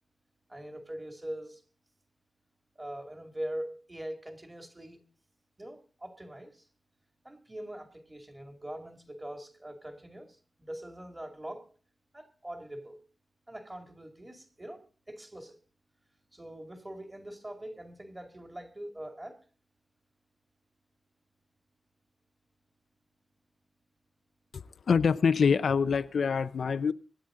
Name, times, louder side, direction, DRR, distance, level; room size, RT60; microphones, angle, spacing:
voice 1, 0.5-1.6 2.8-5.0 5.6-6.7 7.2-11.7 12.1-13.0 13.5-15.6 16.3-19.4, right 1 dB, 15° right, 2.3 m, -42 dB
voice 2, 24.5-26.9, left 6 dB, 70° left, 0.6 m, -25 dB
24.5 x 10.0 x 3.8 m
wide cardioid pair, 160°, 0 cm